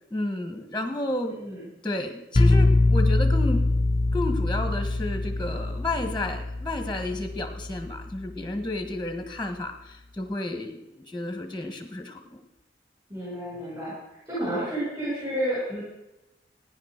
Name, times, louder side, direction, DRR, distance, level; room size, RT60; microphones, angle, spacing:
voice 1, 0.1-1.3 1.8-3.6 4.1-12.2, left 1 dB, 5° left, 6 dB, 1.4 m, -31 dB
voice 2, 1.2-1.6 13.1-13.9 14.3-15.8, right 1 dB, 25° right, -7 dB, 6.7 m, -30 dB
sound 1, 2.3-8.1, left 2 dB, 30° left, 0.6 m, -23 dB
16.0 x 10.0 x 6.5 m, 0.94 s
head